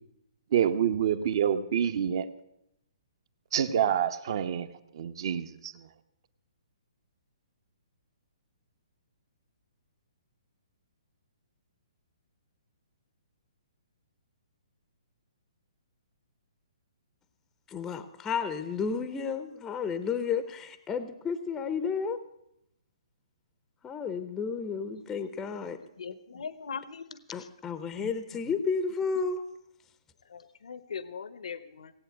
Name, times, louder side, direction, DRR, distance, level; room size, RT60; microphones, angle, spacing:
voice 1, 0.5-2.3 3.5-4.7 4.9-5.9, right 9 dB, 45° right, 11 dB, 0.9 m, -27 dB
voice 2, 17.7-22.2 23.8-25.8 27.3-29.4, left 5 dB, 10° left, 11 dB, 0.6 m, -32 dB
voice 3, 26.0-27.5 28.0-28.1 28.4-28.5 30.2-31.9, left 6 dB, 80° left, 15 dB, 0.9 m, -41 dB
17.5 x 8.5 x 8.0 m, 0.79 s
hypercardioid pair, 165°, 3 cm